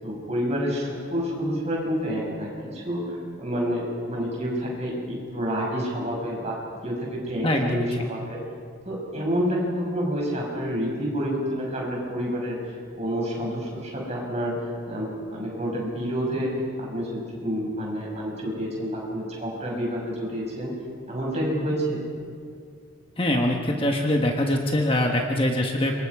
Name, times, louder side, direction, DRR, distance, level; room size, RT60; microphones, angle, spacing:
voice 1, 0.0-6.5 6.8-8.4 8.8-14.5 14.9-16.5 16.8-20.7 21.1-22.0, equal, 30° right, -3 dB, 6.5 m, -28 dB
voice 2, 7.4-7.9 23.2-25.9, left 1 dB, 25° left, 1 dB, 1.4 m, -23 dB
27.5 x 24.0 x 4.9 m, 2.2 s
head